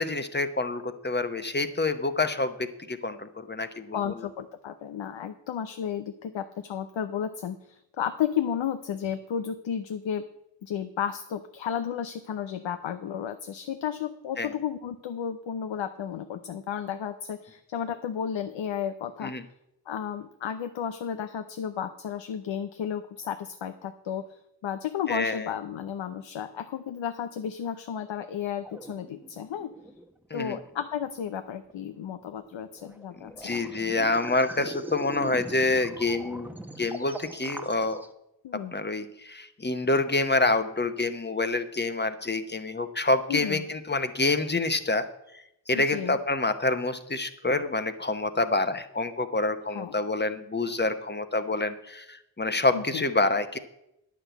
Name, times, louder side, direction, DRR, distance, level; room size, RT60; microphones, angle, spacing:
voice 1, 0.0-4.0 14.4-14.5 19.2-19.4 25.1-25.5 30.3-30.6 33.2-36.5 36.8-38.0 38.7-45.1 45.7-53.6, left 2 dB, 25° left, 10 dB, 1.0 m, -27 dB
voice 2, 3.9-10.3 10.6-19.3 19.9-29.7 30.3-33.7 38.4-38.7 43.3-43.7 45.7-46.2 49.7-50.0 52.7-53.0, left 8 dB, 90° left, 10 dB, 0.6 m, -33 dB
sound 1, 28.6-30.1 30.3-31.1 31.6-32.1 32.8-38.1, right 1 dB, 5° right, 1.0 m, -41 dB
9.8 x 6.1 x 8.1 m, 0.84 s
cardioid pair, 55°, 44 cm